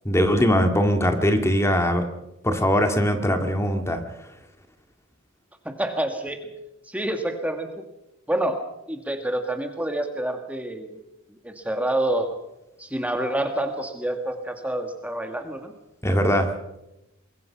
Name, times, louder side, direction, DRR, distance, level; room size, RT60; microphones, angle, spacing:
voice 1, 0.1-2.1 2.4-4.0 16.0-16.5, equal, 15° left, 6 dB, 2.0 m, -21 dB
voice 2, 5.6-6.4 6.9-7.7 8.3-8.6 8.9-11.0 11.4-12.3 12.8-15.7, right 1 dB, 5° right, 5 dB, 1.7 m, -27 dB
25.0 x 22.0 x 5.8 m, 0.92 s
head